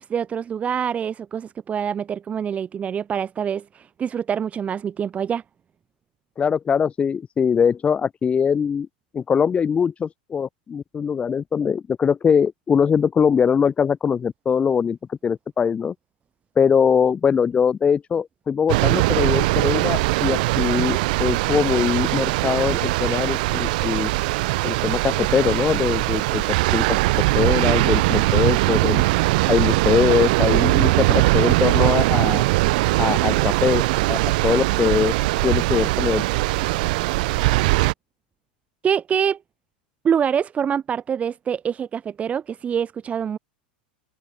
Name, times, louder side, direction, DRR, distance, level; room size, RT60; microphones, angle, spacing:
voice 1, 0.0-5.4 38.8-39.4 40.0-43.4, right 8 dB, 25° right, 5.6 m, -25 dB
voice 2, 6.4-8.9 9.1-15.9 16.6-24.1 24.6-26.4 26.7-27.0 27.3-29.0 29.5-32.4 33.0-33.8 34.1-35.1 35.4-36.2, left 7 dB, 25° left, 5.6 m, -22 dB
sound 1, 18.7-37.9, right 22 dB, 60° right, 1.1 m, -20 dB
open air
hypercardioid pair, 100°, 5 cm